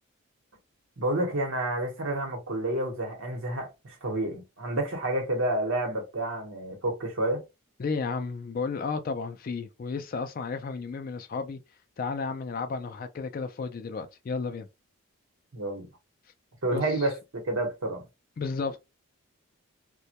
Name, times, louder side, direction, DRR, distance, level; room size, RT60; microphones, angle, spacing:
voice 1, 1.0-7.4 15.5-15.9 16.6-17.1 17.4-18.0, right 1 dB, 65° right, 0.9 m, -29 dB
voice 2, 7.8-11.6 12.0-14.7 16.6-16.8 18.4-18.8, left 4 dB, 40° left, 0.3 m, -33 dB
2.1 x 2.1 x 2.7 m
head